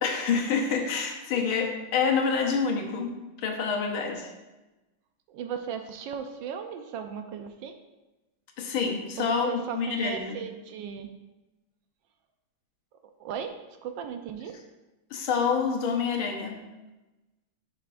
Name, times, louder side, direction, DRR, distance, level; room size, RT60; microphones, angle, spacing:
voice 1, 0.0-4.3 8.6-10.4 15.1-16.6, left 5 dB, 85° left, 2 dB, 1.8 m, -27 dB
voice 2, 5.3-7.8 9.2-11.1 13.2-13.5 13.8-14.5, right 8 dB, 75° right, 6 dB, 1.2 m, -36 dB
10.5 x 5.8 x 2.5 m, 1.1 s
omnidirectional pair, 2.2 m